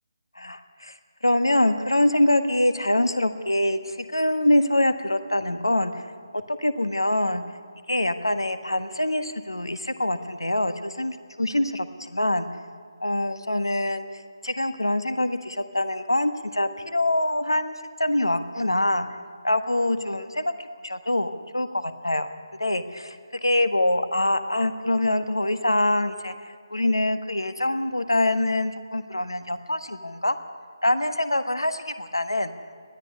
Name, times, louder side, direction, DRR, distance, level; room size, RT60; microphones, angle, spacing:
voice 1, 0.4-0.9 1.2-5.9 6.3-7.4 7.9-12.5 13.0-14.0 14.4-17.7 18.0-19.1 19.4-22.3 22.6-23.2 23.4-26.3 26.7-30.4 30.8-32.5, left 1 dB, 75° left, 10 dB, 1.4 m, -24 dB
20.5 x 14.0 x 9.8 m, 2.1 s
figure-of-eight pair, 150°, 2 cm